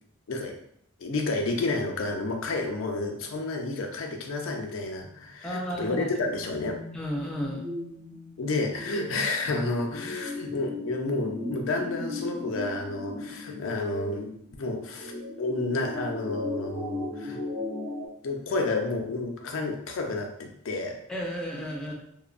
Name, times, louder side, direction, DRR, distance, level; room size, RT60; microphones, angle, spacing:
voice 1, 1.0-6.8 8.4-15.1 15.4-17.4 18.2-21.0, left 2 dB, 80° left, 3 dB, 0.5 m, -30 dB
voice 2, 5.4-6.1 6.9-7.6 21.1-21.9, equal, 5° left, -3 dB, 0.4 m, -33 dB
sound 1, 6.0-18.1, left 2 dB, 30° right, 0.7 m, -38 dB
2.9 x 2.0 x 2.4 m, 0.70 s
head